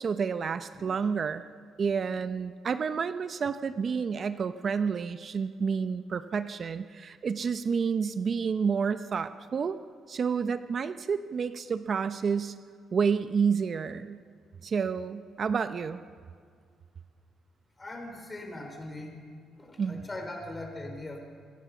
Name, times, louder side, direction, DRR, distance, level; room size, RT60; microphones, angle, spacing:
voice 1, 0.0-1.4 1.8-9.8 10.1-12.5 12.9-14.2 14.6-16.0 19.8-20.0, right 6 dB, 50° right, 11 dB, 0.7 m, -29 dB
voice 2, 0.8-1.1 17.8-19.2 19.6-21.2, left 1 dB, 20° left, 4 dB, 5.2 m, -40 dB
27.5 x 17.0 x 7.1 m, 2.1 s
cardioid pair, 90°, 0 cm